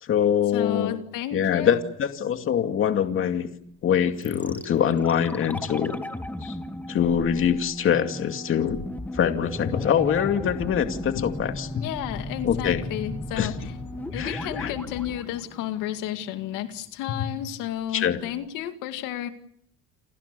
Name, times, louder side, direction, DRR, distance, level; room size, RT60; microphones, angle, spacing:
voice 1, 0.0-1.0 1.3-3.5 3.8-6.0 6.4-6.5 6.9-8.8 9.1-11.8 12.4-12.8 13.4-13.5 14.1-14.7 17.9-18.2, left 8 dB, 40° left, 7 dB, 2.4 m, -24 dB
voice 2, 0.5-1.8 11.8-19.3, left 12 dB, 80° left, 8 dB, 2.2 m, -32 dB
sound 1, 4.2-16.2 16.5-16.6, left 1 dB, 5° left, 1.7 m, -36 dB
sound 2, 9.6-15.2, left 6 dB, 60° left, 5.0 m, -44 dB
29.5 x 26.0 x 6.9 m, 0.67 s
cardioid pair, 135°, 31 cm